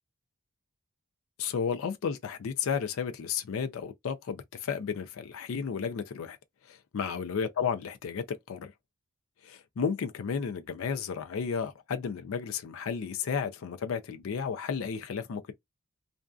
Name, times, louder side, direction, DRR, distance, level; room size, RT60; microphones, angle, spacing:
voice 1, 1.4-6.4 6.6-8.7 9.4-15.5, left 6 dB, 70° left, 0.4 m, -33 dB
2.5 x 2.3 x 2.2 m
head